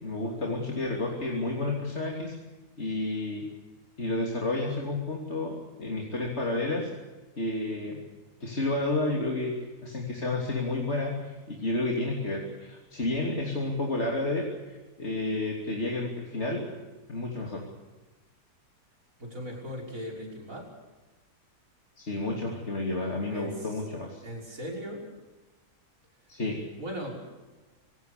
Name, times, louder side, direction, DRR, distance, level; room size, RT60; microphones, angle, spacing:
voice 1, 0.0-2.3 2.8-3.5 4.0-6.9 7.4-8.0 8.4-9.5 9.8-16.6 17.1-17.6 22.0-24.2 26.3-26.7, left 2 dB, 40° left, -1 dB, 3.4 m, -31 dB
voice 2, 19.2-20.7 23.3-23.9 24.2-25.1 26.8-27.2, equal, 55° right, -1 dB, 6.5 m, -38 dB
26.0 x 18.0 x 6.8 m, 1.2 s
omnidirectional pair, 1.7 m